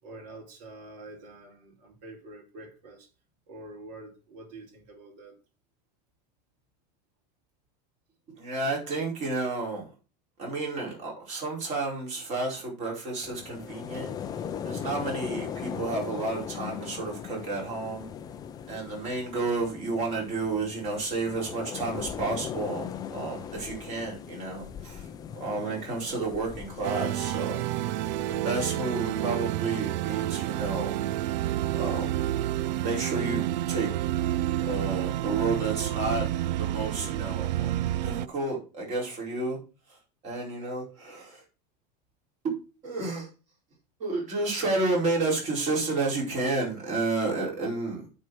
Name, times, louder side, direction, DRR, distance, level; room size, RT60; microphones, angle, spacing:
voice 1, 0.0-3.1 3.5-5.4, right 2 dB, 50° right, 4.3 m, -46 dB
voice 2, 8.4-9.9 10.4-14.1 14.6-18.1 18.7-25.1 25.4-27.6 28.3-30.9 31.8-32.2 32.8-33.9 34.6-36.3 36.6-39.6 39.9-40.0 40.2-41.4 42.4-42.6 42.8-43.3 44.0-48.2, right 3 dB, 35° right, 4.7 m, -31 dB
sound 1, 13.2-28.4, left 8 dB, 20° left, 0.5 m, -39 dB
sound 2, 26.8-38.3, right 13 dB, 90° right, 0.5 m, -29 dB
9.4 x 4.5 x 6.3 m
supercardioid pair, 165°, 21 cm